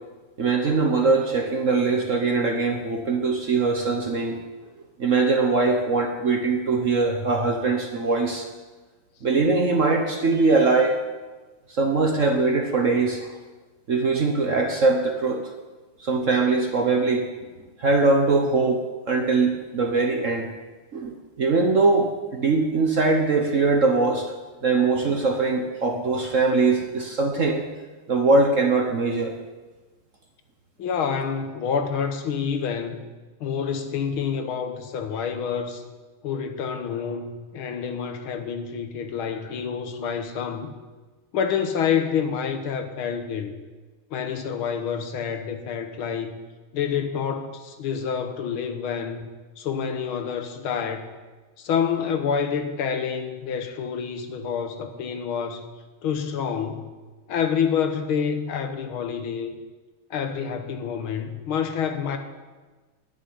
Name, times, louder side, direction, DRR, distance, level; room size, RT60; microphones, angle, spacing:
voice 1, 0.4-4.4 5.0-8.5 9.2-11.0 11.7-13.4 13.9-15.5 16.0-17.2 17.8-18.8 19.1-20.5 20.9-24.3 24.6-27.6 28.1-29.3, right 3 dB, 45° right, 3 dB, 1.2 m, -22 dB
voice 2, 30.8-33.0 33.4-35.8 36.2-40.7 41.3-43.5 44.1-46.4 46.7-49.3 49.6-51.1 51.6-55.7 56.0-56.9 57.3-59.5 60.1-62.2, left 7 dB, 75° left, 7 dB, 1.9 m, -28 dB
10.0 x 9.3 x 9.5 m, 1.3 s
omnidirectional pair, 2.4 m